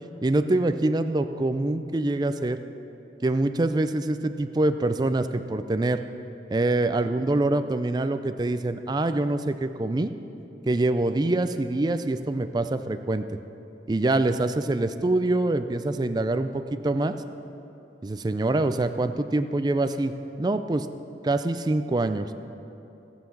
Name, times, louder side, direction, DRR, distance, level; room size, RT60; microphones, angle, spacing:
voice 1, 0.2-2.6 3.2-6.0 6.5-10.1 10.6-13.4 13.9-17.2 18.0-20.1 20.4-20.9 21.2-22.3, right 2 dB, 25° right, 10 dB, 0.4 m, -25 dB
17.0 x 5.8 x 7.1 m, 2.9 s
head